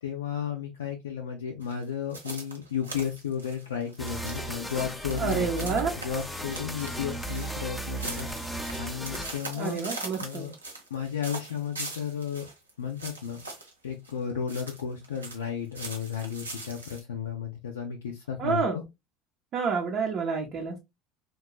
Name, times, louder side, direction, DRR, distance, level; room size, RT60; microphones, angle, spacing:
voice 1, 0.0-9.8 10.2-10.5 10.9-12.5 12.8-13.4 13.8-18.8, left 8 dB, 80° left, 2 dB, 0.4 m, -33 dB
sound 1, 1.6-15.4 15.7-17.0, right 2 dB, 90° right, 0.6 m, -41 dB
sound 2, 4.0-9.4, right 1 dB, 5° left, 0.5 m, -35 dB
voice 2, 5.2-6.0 9.6-10.5 18.4-18.8 19.5-20.8, right 5 dB, 45° right, 0 dB, 0.6 m, -28 dB
2.9 x 2.3 x 2.2 m, 0.22 s
figure-of-eight pair, 65°, 0 cm